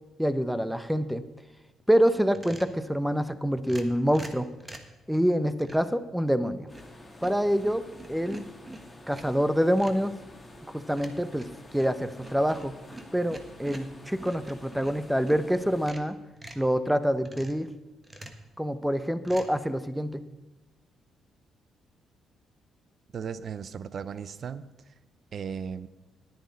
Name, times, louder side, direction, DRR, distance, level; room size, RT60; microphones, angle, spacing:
voice 1, 0.2-1.2 1.9-4.5 5.1-6.7 7.2-7.8 8.1-8.4 9.1-10.1 10.9-11.5 11.7-12.7 13.1-16.2 16.5-17.7 18.6-20.2, equal, 5° right, 13 dB, 0.7 m, -26 dB
sound 1, 2.3-2.8 3.6-5.0 5.6-5.9 6.5-7.0 7.2-9.4 9.8-10.1 11.0-15.4 15.8-16.7 17.3-17.7 18.0-18.5 19.2-19.5, right 2 dB, 20° right, 1.4 m, -46 dB
sound 2, 6.7-15.9, left 1 dB, 15° left, 2.1 m, -49 dB
voice 2, 23.1-24.7 25.3-25.9, right 7 dB, 55° right, 15 dB, 0.5 m, -36 dB
10.5 x 10.0 x 5.3 m, 1.1 s
cardioid pair, 90°, 0 cm